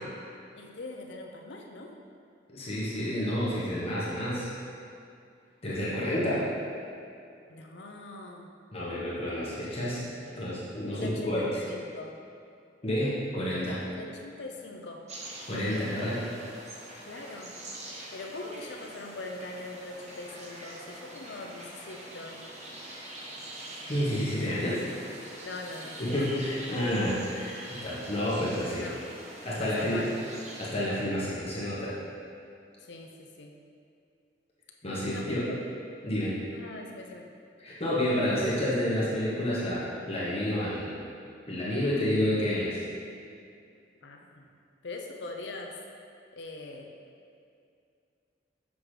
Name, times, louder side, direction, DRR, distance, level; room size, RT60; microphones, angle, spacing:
voice 1, 0.5-1.9 5.8-6.0 7.5-8.5 10.8-12.1 13.9-15.0 17.0-17.6 18.1-22.5 25.4-26.2 28.6-29.0 29.6-30.2 32.8-33.5 35.1-35.6 36.5-37.3 44.0-44.5 44.8-45.7 46.3-46.9, left 2 dB, 75° left, 1 dB, 0.7 m, -42 dB
voice 2, 2.5-4.5 5.6-6.5 8.7-10.0 10.3-11.6 12.8-13.8 15.5-16.2 23.8-24.8 26.0-28.9 29.4-30.0 30.6-32.0 34.8-35.5 36.0-36.4 37.6-41.1 41.5-42.8, left 1 dB, 35° left, -8 dB, 1.3 m, -29 dB
sound 1, 15.1-30.7, right 1 dB, 40° right, 1.0 m, -44 dB
6.9 x 6.0 x 3.3 m, 2.4 s
head